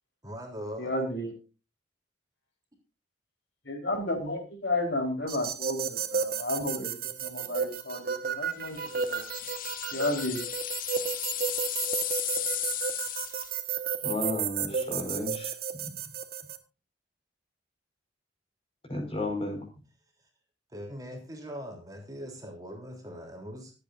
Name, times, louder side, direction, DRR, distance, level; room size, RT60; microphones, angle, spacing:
voice 1, 0.2-0.9 20.7-23.7, equal, 20° right, 1 dB, 3.5 m, -41 dB
voice 2, 0.8-1.3 3.6-6.9 7.2-9.2 9.9-10.4 14.7-15.1, left 1 dB, 65° left, 3 dB, 4.2 m, -32 dB
sound 1, 5.3-16.6, right 6 dB, 50° right, 1.5 m, -33 dB
sound 2, 8.7-13.6, left 12 dB, 45° left, 0.8 m, -35 dB
voice 3, 14.0-15.5 15.8-15.9 18.9-19.6, left 2 dB, 30° left, 3 dB, 5.1 m, -33 dB
25.0 x 8.8 x 2.6 m, 0.30 s
head